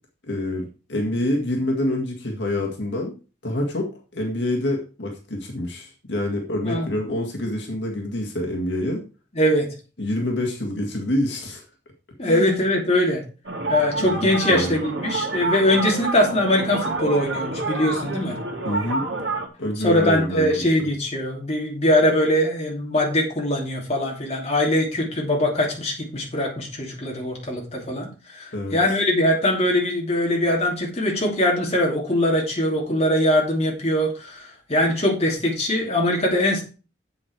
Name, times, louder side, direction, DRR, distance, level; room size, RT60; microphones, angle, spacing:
voice 1, 0.3-3.1 3.4-9.0 10.0-11.6 12.2-12.6 14.1-14.8 18.6-19.1 19.6-20.5 28.5-28.8, left 1 dB, 70° left, 0 dB, 1.9 m, -26 dB
voice 2, 9.3-9.7 12.2-13.2 13.7-18.4 19.8-36.6, left 1 dB, 35° left, -1 dB, 2.8 m, -22 dB
sound 1, 13.4-19.5, right 3 dB, 75° right, 1.8 m, -28 dB
8.0 x 7.7 x 4.7 m, 0.35 s
head